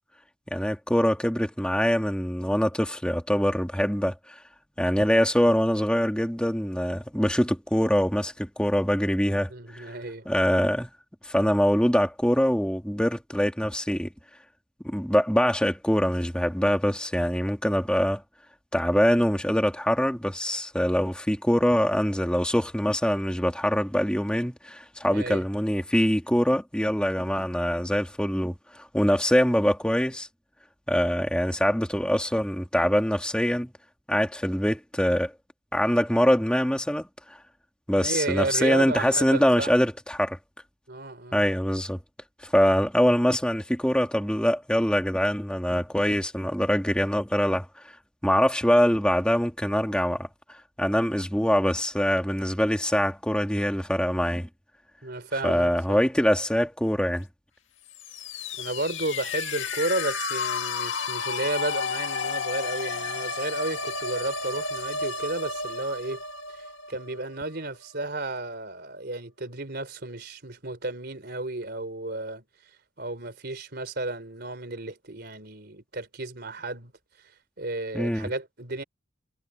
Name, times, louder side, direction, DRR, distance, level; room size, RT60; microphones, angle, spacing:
voice 1, 0.5-4.4 4.8-9.9 10.3-10.9 11.2-14.1 14.8-18.2 18.7-30.3 30.9-33.7 34.1-35.3 35.7-37.1 37.9-40.4 41.3-42.0 42.4-47.7 48.2-50.3 50.8-54.5 55.4-57.3 77.9-78.3, equal, 5° left, 2.6 m, -24 dB
voice 2, 9.5-10.3 25.1-25.4 38.0-39.7 40.9-41.4 55.0-56.0 58.6-66.2 66.9-72.4 73.0-76.9 77.6-78.8, right 2 dB, 55° right, 3.8 m, -32 dB
sound 1, 57.9-67.6, left 4 dB, 75° left, 2.0 m, -32 dB
head